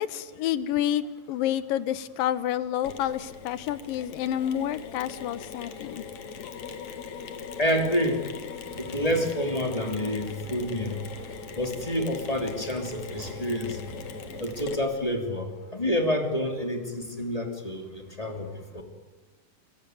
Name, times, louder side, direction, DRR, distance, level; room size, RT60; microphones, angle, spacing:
voice 1, 0.0-6.0, left 11 dB, 80° left, 15 dB, 2.7 m, -29 dB
Mechanisms, 2.8-15.2, left 6 dB, 60° left, 2.9 m, -40 dB
voice 2, 7.6-8.2 8.8-11.0 11.6-13.8 14.4-18.8, equal, 10° left, 4 dB, 2.8 m, -28 dB
sound 1, 8.6-14.8, right 4 dB, 60° right, 2.4 m, -45 dB
26.5 x 22.0 x 9.4 m, 1.2 s
omnidirectional pair, 4.0 m